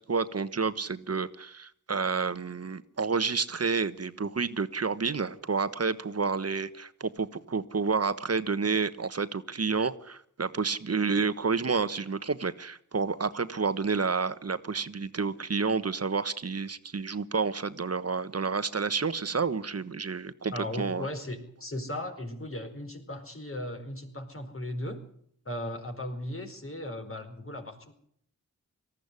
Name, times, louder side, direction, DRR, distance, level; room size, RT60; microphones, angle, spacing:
voice 1, 0.1-21.1, right 4 dB, 50° right, 13 dB, 1.3 m, -30 dB
voice 2, 20.5-25.0 25.4-27.9, left 1 dB, 40° left, 5 dB, 4.7 m, -37 dB
19.0 x 14.5 x 9.8 m, 0.68 s
cardioid pair, 40°, 33 cm